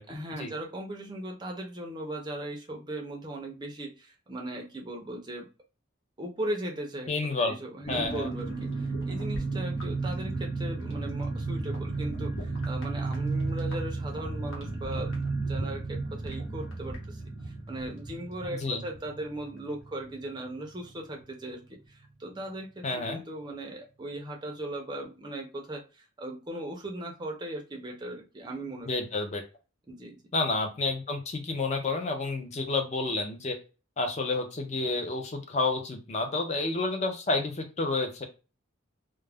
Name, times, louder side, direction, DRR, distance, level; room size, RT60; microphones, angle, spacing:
voice 1, 0.1-5.5 6.2-7.1 7.4-28.9 29.9-30.2, right 1 dB, 20° right, 1 dB, 0.4 m, -38 dB
voice 2, 7.1-7.6 7.9-8.3 18.5-18.8 22.8-23.2 28.9-29.4 30.3-33.6 34.0-38.2, left 3 dB, 35° left, 4 dB, 0.4 m, -30 dB
sound 1, 7.8-20.2 20.5-20.6 20.8-21.1, right 3 dB, 80° left, 1.0 m, -33 dB
2.3 x 2.0 x 3.3 m, 0.32 s
head